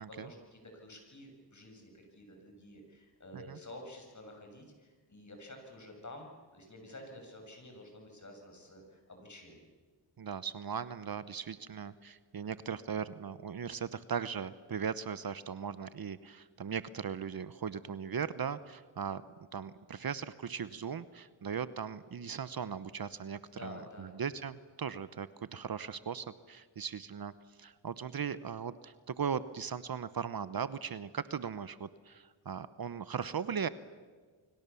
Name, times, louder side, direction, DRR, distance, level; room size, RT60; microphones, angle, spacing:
voice 1, 0.0-9.7 23.6-24.1, left 1 dB, 35° left, 3 dB, 7.0 m, -50 dB
voice 2, 10.2-19.2 19.5-27.3 27.6-33.7, right 7 dB, 50° right, 15 dB, 1.0 m, -38 dB
29.5 x 24.0 x 7.1 m, 1.5 s
cardioid pair, 75°, 47 cm